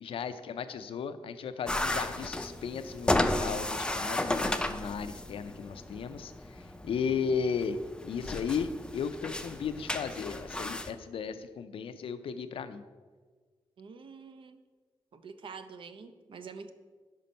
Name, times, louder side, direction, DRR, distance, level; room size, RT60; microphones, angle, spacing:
voice 1, 0.0-7.8 8.0-12.8, left 6 dB, 90° left, 11 dB, 0.4 m, -35 dB
sound 1, 1.7-10.9, left 1 dB, 10° left, 0.4 m, -34 dB
voice 2, 13.8-14.6 15.1-16.7, right 5 dB, 70° right, 10 dB, 0.5 m, -46 dB
5.6 x 5.1 x 5.2 m, 1.5 s
wide cardioid pair, 100°, 9 cm